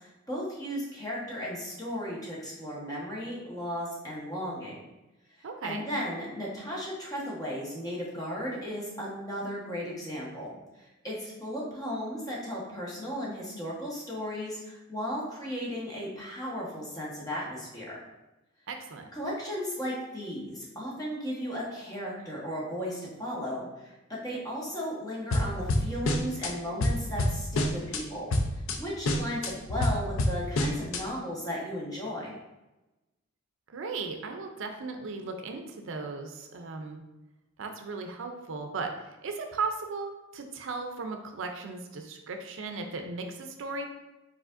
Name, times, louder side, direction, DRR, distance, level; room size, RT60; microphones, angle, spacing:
voice 1, 0.0-4.8 5.3-18.0 19.1-28.4 28.8-32.4, equal, 20° left, -5 dB, 1.2 m, -35 dB
voice 2, 5.4-5.8 18.7-19.1 33.7-37.0 37.6-38.9 39.2-43.9, right 4 dB, 70° right, 5 dB, 0.5 m, -36 dB
sound 1, 25.3-26.5 26.8-28.0 28.3-28.8 29.1-31.0, left 1 dB, 85° left, 0.6 m, -27 dB
4.8 x 4.1 x 2.5 m, 1.0 s
head